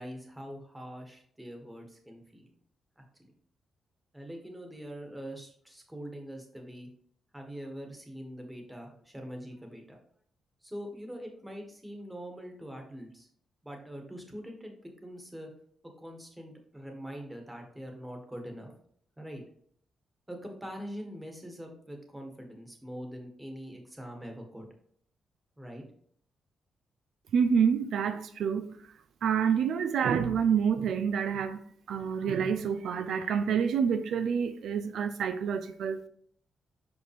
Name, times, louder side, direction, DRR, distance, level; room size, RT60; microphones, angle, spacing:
voice 1, 0.0-2.5 3.0-3.3 4.1-6.9 7.3-10.0 10.6-13.3 13.6-14.8 15.0-15.5 16.0-18.7 19.2-19.4 20.3-24.7 25.6-25.8, equal, 10° right, 1.4 m, -43 dB
voice 2, 27.3-28.7 29.2-31.6 31.9-36.1, right 7 dB, 80° right, 0.4 m, -28 dB
6.0 x 5.2 x 3.3 m
cardioid pair, 120°, 0 cm